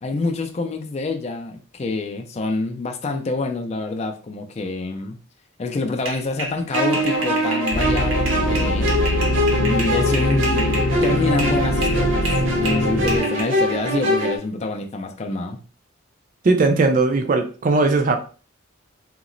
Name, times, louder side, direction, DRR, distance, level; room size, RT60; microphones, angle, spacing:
voice 1, 0.0-5.2 5.6-8.9 9.5-12.2 12.6-15.6, left 3 dB, 30° left, 4 dB, 0.4 m, -26 dB
sound 1, 6.0-11.6 11.8-13.4, right 1 dB, 85° right, 1.0 m, -30 dB
sound 2, 6.7-14.4, equal, 70° right, 0.7 m, -23 dB
sound 3, 7.7-13.2, left 1 dB, 75° left, 0.6 m, -23 dB
voice 2, 16.4-18.2, right 3 dB, 40° right, 5 dB, 0.3 m, -18 dB
2.9 x 2.0 x 3.7 m, 0.37 s
head